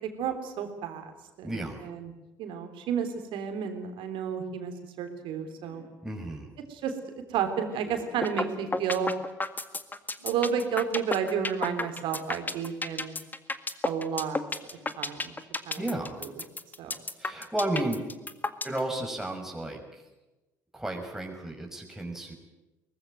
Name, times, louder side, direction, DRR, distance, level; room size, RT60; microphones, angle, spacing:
voice 1, 0.2-2.1 2.4-5.8 6.7-6.9 7.3-9.1 10.2-13.2 13.8-14.4 14.7-15.3 15.7-15.8 16.2-16.3 16.8-17.0, right 7 dB, 60° right, 7 dB, 3.4 m, -31 dB
voice 2, 1.4-1.8 6.0-6.5 15.8-16.2 17.2-18.0 18.6-20.0 20.7-22.3, right 1 dB, 5° right, 1 dB, 5.5 m, -33 dB
sound 1, 5.1-5.9 7.4-8.9 9.9-10.6 11.7-12.6 14.1-15.0 16.1-16.2, left 2 dB, 85° left, 3.2 m, -51 dB
sound 2, 8.2-8.4 8.7-18.8, left 3 dB, 20° left, 1.8 m, -31 dB
23.0 x 19.5 x 9.2 m, 1.0 s
figure-of-eight pair, 50°, 10 cm